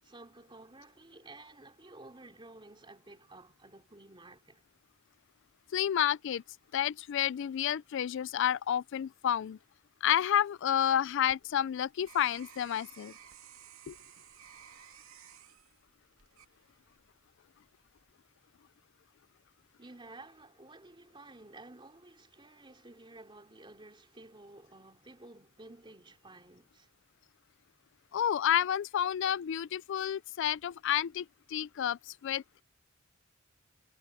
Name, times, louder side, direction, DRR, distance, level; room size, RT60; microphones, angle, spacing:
voice 1, 0.0-4.6 19.8-26.9, right 2 dB, 25° right, 3.6 m, -53 dB
voice 2, 5.7-6.4 6.7-9.6 10.0-13.1 13.9-14.0 28.1-32.6, left 10 dB, 60° left, 0.3 m, -30 dB
sound 1, 10.9-17.1 17.7-18.1, right 9 dB, 85° right, 2.6 m, -55 dB
head